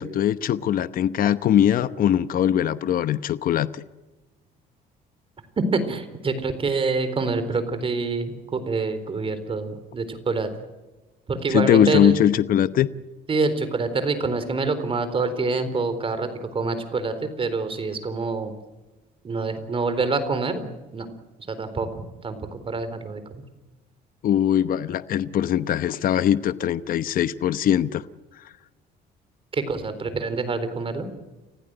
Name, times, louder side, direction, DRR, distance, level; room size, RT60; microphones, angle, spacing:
voice 1, 0.0-3.8 11.5-12.9 24.2-28.0, left 10 dB, 55° left, 13 dB, 0.9 m, -21 dB
voice 2, 5.7-10.5 11.3-12.3 13.3-18.5 19.2-20.6 20.9-21.1 21.5-21.9 22.2-23.2 29.5-31.1, right 4 dB, 30° right, 10 dB, 4.0 m, -26 dB
30.0 x 15.5 x 7.9 m, 1.1 s
cardioid pair, 110°, 17 cm